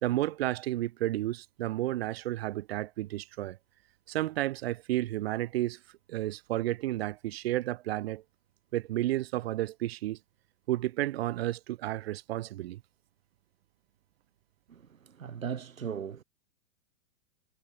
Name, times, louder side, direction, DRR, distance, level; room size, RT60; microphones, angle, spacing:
voice 1, 0.0-3.6 4.1-5.8 6.1-8.2 8.7-10.2 10.7-12.8, right 15 dB, 50° right, 1.5 m, -32 dB
voice 2, 14.7-16.2, right 7 dB, 85° right, 0.7 m, -38 dB
figure-of-eight pair, 110°, 40 cm